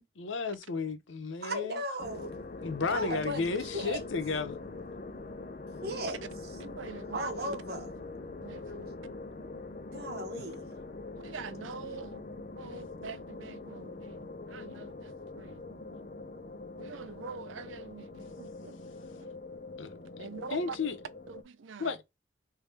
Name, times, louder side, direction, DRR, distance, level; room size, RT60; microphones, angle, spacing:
voice 1, 0.0-1.8 2.6-4.6 19.8-20.0 20.5-20.9 21.8-22.0, left 4 dB, 85° left, 0.6 m, -33 dB
voice 2, 1.4-2.3 2.9-4.0 5.8-6.2 7.1-7.8 9.9-10.7, right 1 dB, 55° right, 1.1 m, -36 dB
sound 1, 2.0-21.4, left 3 dB, 45° left, 0.6 m, -43 dB
voice 3, 6.6-7.6 8.4-8.9 11.2-12.3 12.6-15.6 16.8-18.8 19.2-19.3 20.2-20.8 21.3-22.0, right 5 dB, 90° right, 0.5 m, -45 dB
3.5 x 2.7 x 3.2 m
head